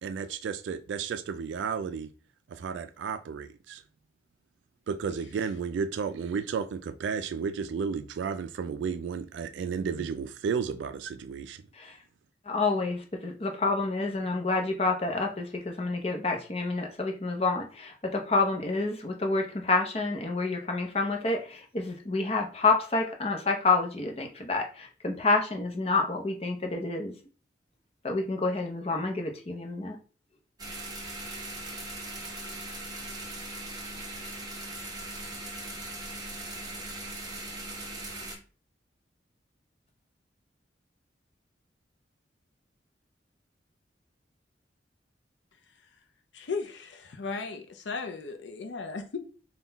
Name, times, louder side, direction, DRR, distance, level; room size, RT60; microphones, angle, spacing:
voice 1, 0.0-2.1 2.5-3.8 4.9-11.6, right 6 dB, 85° right, 0.3 m, -33 dB
voice 2, 12.5-27.2 28.0-30.0, left 3 dB, 35° left, 0.7 m, -28 dB
sound 1, 30.6-38.4, right 2 dB, 20° right, 0.8 m, -39 dB
voice 3, 46.3-49.2, left 4 dB, 85° left, 0.5 m, -36 dB
3.8 x 2.3 x 3.9 m
head